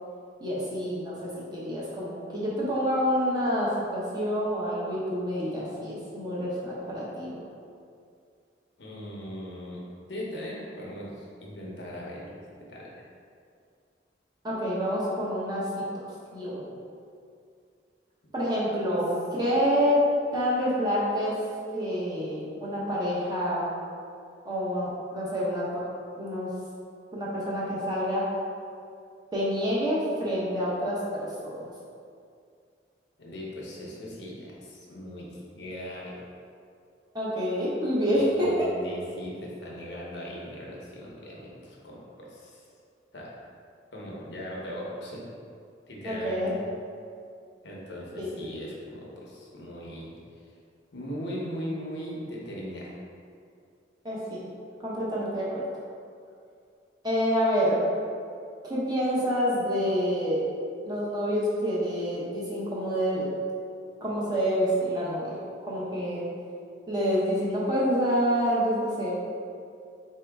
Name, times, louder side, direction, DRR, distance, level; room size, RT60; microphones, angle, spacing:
voice 1, 0.4-7.5 14.4-16.7 18.3-20.0 20.3-21.4 21.7-23.7 24.5-25.8 26.2-26.5 27.1-28.2 29.3-31.7 37.1-38.7 46.0-46.5 48.2-48.3 54.0-54.4 54.8-55.5 57.0-57.8 58.6-60.4 60.8-63.3 64.0-65.4 65.7-66.3 66.9-69.1, equal, 25° right, -8 dB, 0.8 m, -27 dB
voice 2, 8.8-9.8 10.1-12.4 12.7-13.1 33.2-36.2 38.1-42.6 43.1-43.3 43.9-45.2 45.9-46.6 47.6-50.5 50.9-53.0, equal, 75° left, -4 dB, 0.8 m, -39 dB
4.2 x 2.8 x 3.4 m, 2.4 s
head